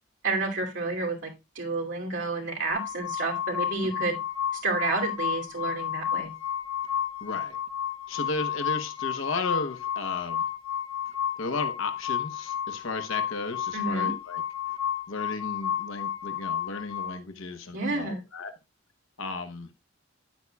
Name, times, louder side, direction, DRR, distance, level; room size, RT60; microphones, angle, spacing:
voice 1, 0.2-4.2 4.6-6.3 13.7-14.1 17.7-18.2, right 3 dB, 65° right, 2.6 m, -30 dB
sound 1, 2.7-17.2, left 9 dB, 25° left, 2.0 m, -32 dB
voice 2, 7.2-7.6 8.1-10.4 11.4-14.4 15.1-18.5 19.2-19.7, left 3 dB, 80° left, 1.0 m, -34 dB
9.7 x 8.7 x 2.2 m
head